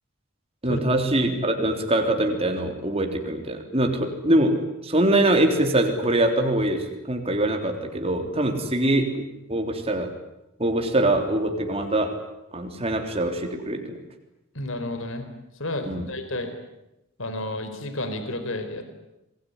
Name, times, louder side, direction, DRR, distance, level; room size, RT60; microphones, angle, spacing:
voice 1, 0.6-4.6 4.8-9.1 9.5-10.1 10.6-12.2 12.5-14.0 15.8-16.1, right 1 dB, 25° right, 4 dB, 3.6 m, -23 dB
voice 2, 14.5-15.3 15.5-16.5 17.2-18.9, left 1 dB, 65° left, 8 dB, 4.2 m, -31 dB
27.5 x 21.5 x 9.8 m, 0.89 s
head